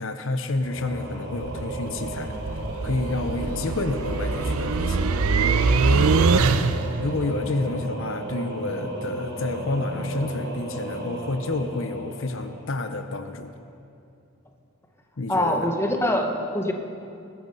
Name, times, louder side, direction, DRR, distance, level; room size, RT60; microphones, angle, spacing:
voice 1, 0.0-2.4 2.8-5.0 5.8-6.5 7.0-13.5 15.2-15.7, left 2 dB, 60° left, 8 dB, 0.7 m, -29 dB
Singing / Musical instrument, 0.6-13.1, right 1 dB, 50° right, 3.1 m, -34 dB
sound 1, 1.4-7.0, right 4 dB, 85° right, 0.6 m, -23 dB
voice 2, 5.9-6.3 15.3-16.7, left 1 dB, 10° left, 3 dB, 1.0 m, -24 dB
20.5 x 11.0 x 5.4 m, 2.6 s
head